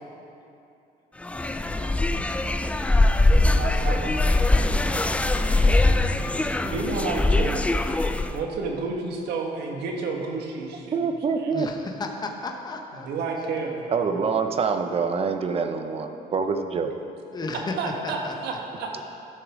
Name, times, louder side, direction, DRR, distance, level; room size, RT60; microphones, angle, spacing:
sound 1, 1.2-8.4, left 2 dB, 5° left, 0.3 m, -22 dB
voice 1, 1.6-2.6 11.5-13.1 17.3-18.3, left 3 dB, 25° left, 3 dB, 0.9 m, -34 dB
voice 2, 3.3-4.4 4.7-4.9 6.6-7.6 8.3-11.0 11.4-11.5 13.0-13.9 17.8-19.0, right 4 dB, 75° right, 1 dB, 1.4 m, -31 dB
voice 3, 10.9-11.7 13.9-16.9, right 5 dB, 35° right, 7 dB, 0.7 m, -25 dB
12.0 x 6.6 x 4.9 m, 2.7 s
cardioid pair, 110°, 17 cm